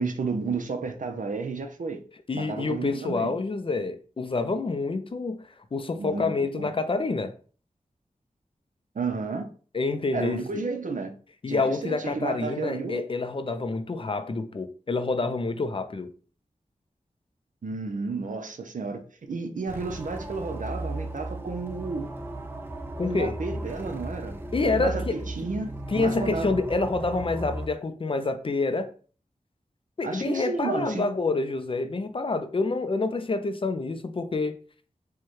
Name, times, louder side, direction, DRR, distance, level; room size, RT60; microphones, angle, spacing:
voice 1, 0.0-2.0 2.3-3.4 6.0-6.7 8.9-9.5 10.1-11.1 11.5-13.0 17.6-19.0 19.3-22.1 23.0-24.4 24.6-26.6 30.0-31.1, right 4 dB, 80° right, 0.6 m, -32 dB
voice 2, 2.3-7.3 9.7-10.6 11.4-16.1 23.0-23.4 24.5-25.2 25.9-28.9 30.0-34.6, left 3 dB, 40° left, 0.4 m, -27 dB
sound 1, 19.7-27.7, right 1 dB, 15° right, 0.4 m, -36 dB
4.6 x 2.2 x 3.0 m
wide cardioid pair, 85°, 13 cm